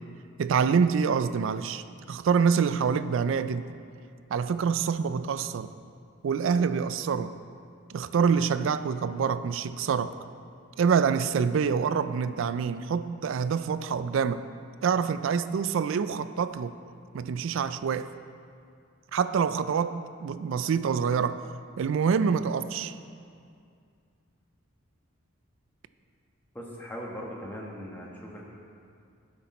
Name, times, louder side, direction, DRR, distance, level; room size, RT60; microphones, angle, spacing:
voice 1, 0.4-3.7 4.3-5.7 6.2-7.3 7.9-10.1 10.8-14.4 14.8-16.8 17.1-18.1 19.1-21.4 21.8-22.9, right 6 dB, 65° right, 13 dB, 0.3 m, -26 dB
voice 2, 26.5-28.4, equal, 10° left, -3 dB, 1.2 m, -39 dB
11.5 x 6.0 x 4.2 m, 2.3 s
head